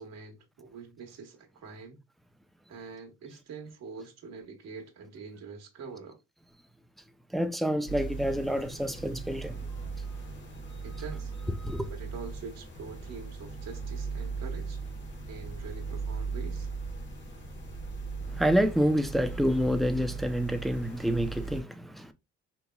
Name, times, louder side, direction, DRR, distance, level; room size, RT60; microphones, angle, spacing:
voice 1, 0.0-2.0 2.7-6.2 10.8-11.3 11.9-14.8 15.3-16.7, right 4 dB, 60° right, 1.0 m, -44 dB
voice 2, 7.3-9.6 11.6-11.9 18.3-22.1, equal, ahead, 0.4 m, -28 dB
sound 1, 7.9-21.6, right 4 dB, 40° left, 1.1 m, -38 dB
4.0 x 2.9 x 2.2 m
cardioid pair, 90°, 30 cm